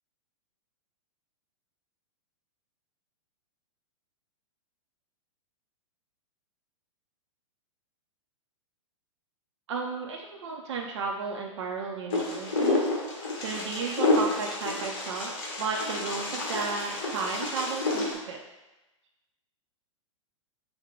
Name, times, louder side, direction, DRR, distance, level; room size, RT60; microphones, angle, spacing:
voice 1, 9.7-15.3 15.6-18.4, right 5 dB, 60° right, 0 dB, 0.5 m, -34 dB
Wind, 12.1-18.1, left 2 dB, 40° left, 1.2 m, -29 dB
5.1 x 2.1 x 4.4 m, 1.0 s
figure-of-eight pair, 105°, 16 cm